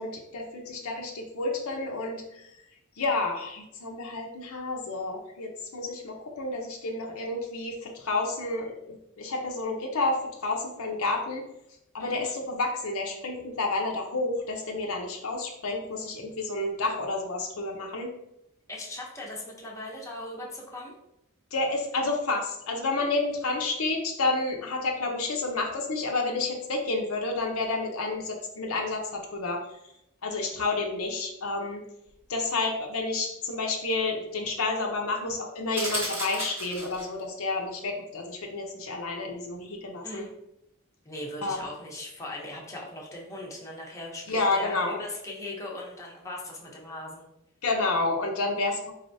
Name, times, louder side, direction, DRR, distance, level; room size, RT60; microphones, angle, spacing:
voice 1, 0.0-2.5 3.0-11.4 11.9-18.1 21.5-29.6 30.2-31.8 32.3-40.3 41.4-41.6 44.3-45.0 47.6-48.9, left 3 dB, 70° left, 1 dB, 0.7 m, -30 dB
voice 2, 18.7-21.0 40.0-40.3 41.0-47.3, left 1 dB, 15° left, -3 dB, 0.8 m, -39 dB
sound 1, 35.7-37.2, right 1 dB, 10° right, 1.0 m, -33 dB
4.2 x 3.3 x 2.6 m, 0.81 s
head